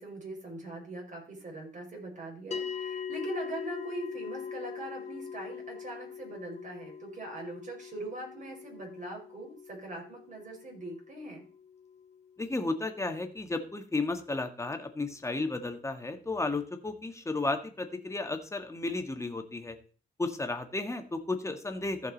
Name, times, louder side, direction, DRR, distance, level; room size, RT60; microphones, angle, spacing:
voice 1, 0.0-11.4, right 2 dB, 40° right, 0 dB, 4.7 m, -41 dB
sound 1, 2.5-13.1, left 7 dB, 35° left, 1.2 m, -42 dB
voice 2, 12.4-19.8 20.2-22.1, left 2 dB, 15° left, 6 dB, 1.6 m, -33 dB
15.0 x 5.3 x 4.1 m, 0.39 s
cardioid pair, 90°, 20 cm